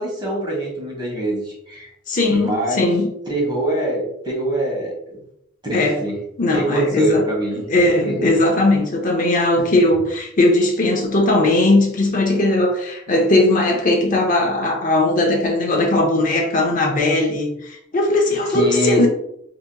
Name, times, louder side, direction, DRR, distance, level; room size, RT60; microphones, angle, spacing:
voice 1, 0.0-1.9 2.3-2.9 3.3-5.2 5.6-6.2 6.5-8.3 9.6-9.7 18.5-19.1, right 1 dB, 25° right, -3 dB, 1.4 m, -24 dB
voice 2, 2.1-3.1 5.7-6.0 6.4-7.2 7.7-19.1, left 2 dB, 45° left, 1 dB, 0.7 m, -18 dB
4.8 x 2.9 x 2.3 m, 0.75 s
head